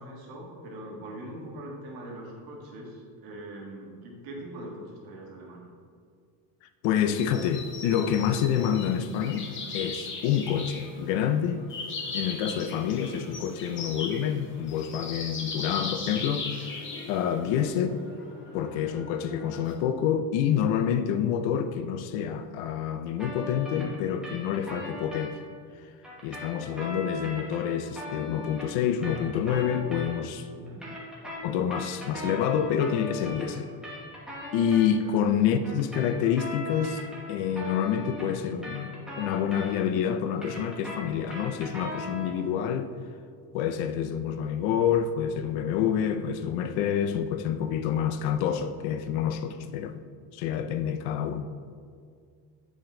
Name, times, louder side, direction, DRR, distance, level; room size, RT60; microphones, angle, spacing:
voice 1, 0.0-5.6 17.3-17.5 30.5-30.8 35.0-35.2, right 1 dB, 55° right, 1.6 m, -42 dB
voice 2, 6.8-9.5 9.7-11.7 12.1-16.8 17.1-18.0 18.5-25.4 26.2-30.5 31.4-33.7 34.5-37.0 37.3-42.9 43.5-50.0 50.3-51.5, left 8 dB, 80° left, 0.6 m, -27 dB
sound 1, 6.9-19.7, left 4 dB, 25° left, 0.7 m, -39 dB
sound 2, 23.2-25.3 26.0-30.4 30.7-34.9 35.6-40.0 40.3-42.4, left 1 dB, ahead, 1.1 m, -39 dB
8.5 x 5.1 x 3.8 m
cardioid pair, 175°, 44 cm